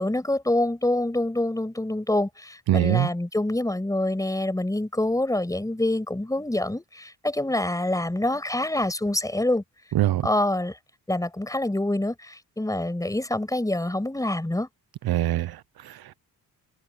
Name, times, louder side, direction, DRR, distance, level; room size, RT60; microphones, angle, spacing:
voice 1, 0.0-9.6 10.2-10.8 11.1-14.7, left 1 dB, 10° left, 6.1 m, -26 dB
voice 2, 2.7-3.1 9.9-10.3 15.1-16.2, right 14 dB, 70° right, 0.8 m, -24 dB
cardioid pair, 130°, 39 cm